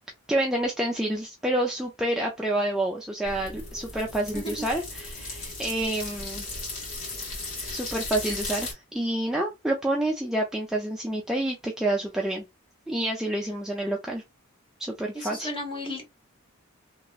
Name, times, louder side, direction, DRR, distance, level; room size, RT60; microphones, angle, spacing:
voice 1, 0.3-6.5 7.7-12.4 12.9-14.2 14.8-15.5, right 1 dB, 5° right, 0.4 m, -28 dB
sound 1, 3.2-8.7, left 2 dB, 65° left, 1.9 m, -36 dB
voice 2, 15.1-16.0, left 1 dB, 25° left, 1.0 m, -34 dB
2.9 x 2.8 x 2.3 m
head